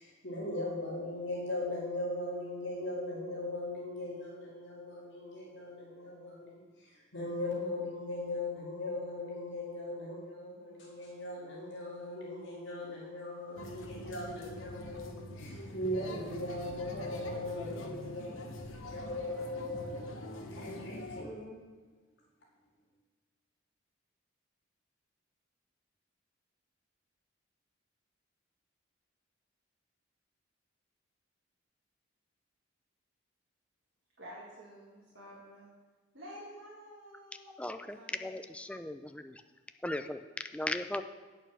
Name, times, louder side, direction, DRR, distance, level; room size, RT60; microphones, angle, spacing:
voice 1, 0.0-20.1 20.5-21.7, left 1 dB, 65° left, -5 dB, 2.0 m, -39 dB
sound 1, 13.6-21.2, left 1 dB, 90° left, 1.1 m, -45 dB
voice 2, 34.2-35.7 36.1-38.3, equal, 65° right, -6 dB, 2.1 m, -50 dB
voice 3, 37.6-39.4 39.8-41.0, left 1 dB, 5° left, 8 dB, 0.3 m, -37 dB
9.0 x 6.6 x 6.1 m, 1.3 s
head